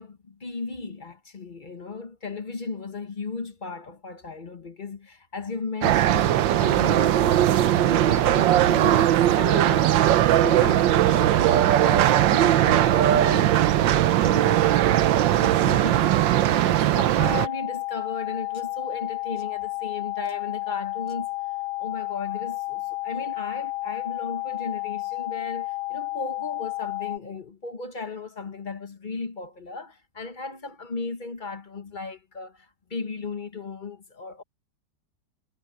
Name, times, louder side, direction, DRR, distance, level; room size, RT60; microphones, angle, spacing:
voice 1, 0.0-10.1 10.4-21.3 21.8-34.4, left 3 dB, 30° left, 1.2 m, -36 dB
sound 1, 5.8-17.5, right 12 dB, 90° right, 1.5 m, -19 dB
sound 2, 15.1-15.3 15.7-16.3 16.7-17.4 18.5-18.7 19.4-19.5 20.2-20.4 21.1-21.2, left 2 dB, 85° left, 7.7 m, -57 dB
sound 3, 17.2-27.2, left 20 dB, 70° left, 2.0 m, -31 dB
omnidirectional pair, 2.0 m